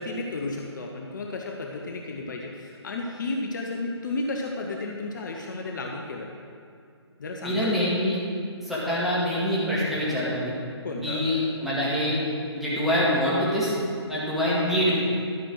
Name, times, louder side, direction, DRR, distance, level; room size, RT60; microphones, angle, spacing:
voice 1, 0.0-6.3 7.2-7.9 10.8-11.3, left 2 dB, 45° left, 1 dB, 0.9 m, -33 dB
voice 2, 7.4-8.2 8.6-10.5 11.0-11.4 11.6-12.2 12.5-13.7 14.1-15.0, equal, ahead, -10 dB, 2.1 m, -25 dB
12.0 x 6.2 x 6.3 m, 2.3 s
figure-of-eight pair, 140°, 15 cm